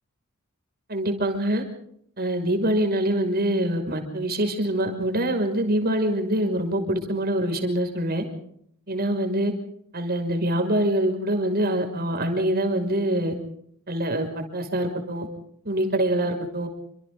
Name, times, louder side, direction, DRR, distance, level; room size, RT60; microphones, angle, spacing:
voice 1, 0.9-1.6 2.2-8.2 8.9-9.5 9.9-13.3 13.9-15.3 15.6-16.7, right 1 dB, 45° right, 5 dB, 5.9 m, -24 dB
29.5 x 26.0 x 3.9 m, 0.67 s
head